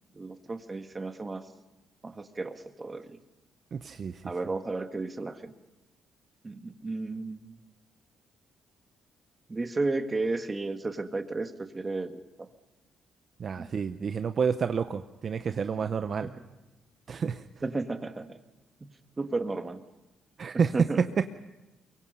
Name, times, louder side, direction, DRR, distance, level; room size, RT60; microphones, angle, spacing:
voice 1, 0.1-1.4 2.0-3.2 4.2-5.5 6.4-7.4 9.5-12.5 13.6-13.7 16.2-16.3 17.6-18.4 18.8-18.9 19.2-19.8 20.7-21.0, right 3 dB, 25° right, 8 dB, 1.6 m, -33 dB
voice 2, 3.7-4.2 13.4-16.3 17.1-17.4 20.4-21.3, right 6 dB, 50° right, 10 dB, 0.7 m, -29 dB
23.5 x 23.0 x 5.5 m, 1.0 s
cardioid pair, 90°, 0 cm